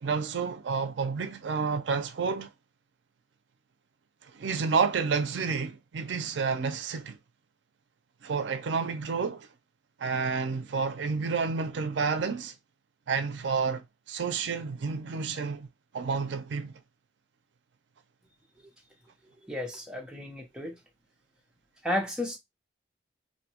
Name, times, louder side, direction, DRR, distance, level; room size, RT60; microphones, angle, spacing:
voice 1, 0.0-2.5 4.2-7.2 8.2-9.5 10.0-12.5 13.1-15.7 15.9-16.8, right 5 dB, 80° right, 0.4 m, -30 dB
voice 2, 19.4-20.8 21.8-22.4, left 1 dB, 5° right, 0.6 m, -33 dB
2.6 x 2.2 x 2.8 m
head